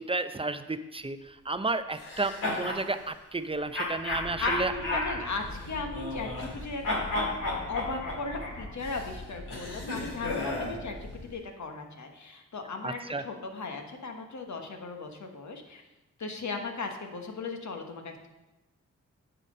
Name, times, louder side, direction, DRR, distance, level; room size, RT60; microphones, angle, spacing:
voice 1, 0.0-5.2 12.8-13.2, right 3 dB, 15° right, 10 dB, 0.6 m, -32 dB
sound 1, 2.0-2.8 3.7-6.6 6.8-10.8, left 2 dB, 80° left, 2.2 m, -33 dB
sound 2, 4.1-11.3, left 2 dB, 30° left, 1.2 m, -44 dB
voice 2, 4.4-6.8 7.1-7.3 7.7-11.0 11.3-15.8 16.2-18.3, left 3 dB, 60° left, 4 dB, 1.3 m, -37 dB
9.0 x 4.1 x 6.4 m, 1.0 s
cardioid pair, 45°, 32 cm